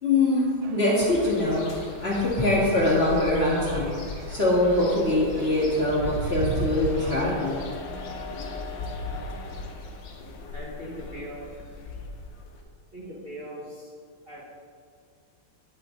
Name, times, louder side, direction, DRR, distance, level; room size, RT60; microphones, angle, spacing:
voice 1, 0.0-4.0 4.3-7.6, left 2 dB, 30° left, -6 dB, 2.0 m, -23 dB
sound 1, 0.6-7.3, right 6 dB, 85° right, 1.5 m, -37 dB
sound 2, 1.1-12.6, left 3 dB, 70° left, 1.6 m, -38 dB
voice 2, 10.5-11.5 12.9-13.9 14.2-14.4, equal, 30° right, -7 dB, 1.7 m, -39 dB
9.5 x 9.1 x 3.8 m, 2.1 s
omnidirectional pair, 2.2 m